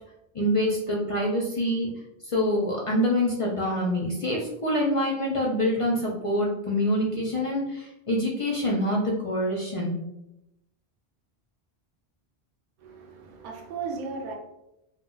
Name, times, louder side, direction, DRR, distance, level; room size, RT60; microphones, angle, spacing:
voice 1, 0.3-1.9 2.2-10.0, left 1 dB, 50° left, -3 dB, 0.4 m, -26 dB
voice 2, 12.8-14.4, right 4 dB, 60° right, 0 dB, 0.6 m, -36 dB
2.2 x 2.1 x 3.7 m, 0.88 s
omnidirectional pair, 1.1 m